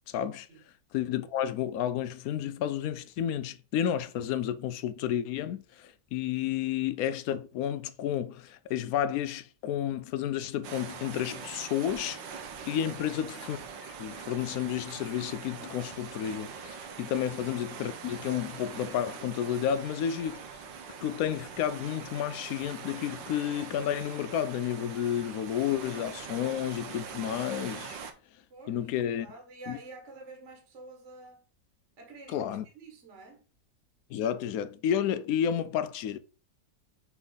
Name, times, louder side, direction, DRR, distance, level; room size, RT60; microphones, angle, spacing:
voice 1, 0.1-0.5 0.9-12.3 12.7-20.4 21.0-28.0 28.7-29.3 29.7-29.8 32.3-32.6 34.1-36.2, left 10 dB, 70° left, 0.9 m, -31 dB
sound 1, 10.6-28.1, right 6 dB, 85° right, 1.6 m, -43 dB
voice 2, 28.5-31.4 32.0-33.4, right 3 dB, 45° right, 1.6 m, -49 dB
6.1 x 3.9 x 5.6 m
omnidirectional pair, 1.9 m